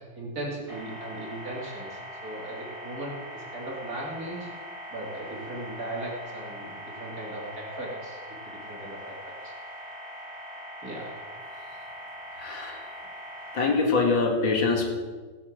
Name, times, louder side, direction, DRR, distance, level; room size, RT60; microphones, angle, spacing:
voice 1, 0.0-4.5 4.9-8.2 8.5-9.5 10.8-11.1, right 1 dB, 45° right, -3 dB, 3.6 m, -38 dB
sound 1, 0.7-13.7, equal, 15° right, 4.6 m, -41 dB
voice 2, 12.4-12.9 13.5-14.9, left 4 dB, 70° left, 2 dB, 2.6 m, -24 dB
17.0 x 7.2 x 7.6 m, 1.4 s
omnidirectional pair, 2.2 m